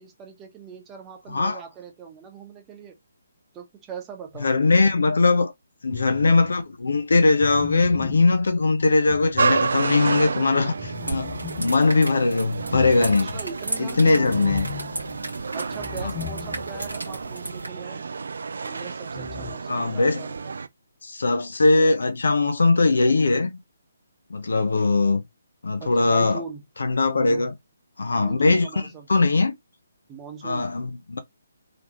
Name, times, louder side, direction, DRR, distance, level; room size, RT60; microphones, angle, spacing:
voice 1, 0.0-2.9 3.5-4.5 12.1-12.2 13.0-14.4 15.5-18.0 18.6-20.5 25.7-26.6 27.2-27.5 28.1-29.1 30.1-30.7, right 6 dB, 15° right, 1.1 m, -40 dB
voice 2, 1.3-1.6 4.4-5.5 5.8-13.3 13.8-14.7 16.0-16.1 19.7-20.2 21.0-23.6 24.3-25.2 25.6-26.4 26.8-27.5 28.0-29.5 30.4-31.2, left 3 dB, 60° left, 0.9 m, -20 dB
sound 1, 5.9-6.6 7.4-10.1 10.8-17.0 17.3-17.4 19.1-19.5, left 12 dB, 20° left, 0.4 m, -39 dB
sound 2, 9.4-20.7, right 4 dB, 55° right, 0.4 m, -30 dB
sound 3, 10.9-17.7, right 2 dB, 80° right, 1.5 m, -36 dB
4.0 x 3.4 x 3.0 m
figure-of-eight pair, 140°, 0 cm